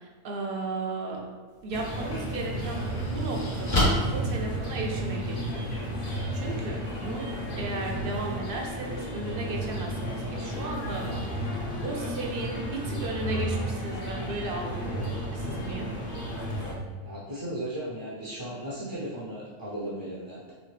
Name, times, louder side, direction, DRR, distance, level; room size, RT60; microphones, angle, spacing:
voice 1, 0.0-1.3 1.6-11.2 11.8-15.9, right 3 dB, 55° right, 0 dB, 0.9 m, -35 dB
sound 1, 1.5-1.6 2.2-5.2, left 1 dB, 85° left, 1.9 m, -29 dB
sound 2, 1.7-16.7, equal, 50° left, 1.0 m, -33 dB
voice 2, 17.0-20.5, right 1 dB, 25° right, -8 dB, 0.7 m, -36 dB
4.1 x 3.6 x 3.2 m, 1.4 s
omnidirectional pair, 1.2 m